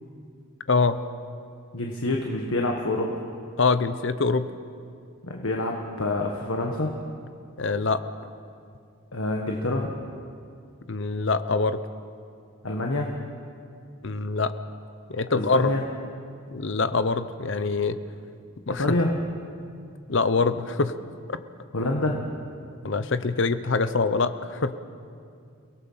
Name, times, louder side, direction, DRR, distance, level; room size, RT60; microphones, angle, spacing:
voice 1, 0.7-1.0 3.6-4.5 7.6-8.0 10.9-11.8 14.0-14.5 15.1-15.7 16.5-18.0 18.7-18.8 20.1-20.9 21.3-21.4 22.8-24.8, left 4 dB, 60° left, 12 dB, 0.8 m, -24 dB
voice 2, 1.7-3.2 5.2-6.9 9.1-9.9 12.6-13.2 15.3-15.8 18.8-19.2 21.7-22.2, left 2 dB, 75° left, 1 dB, 1.5 m, -26 dB
29.0 x 18.0 x 5.7 m, 2.4 s
head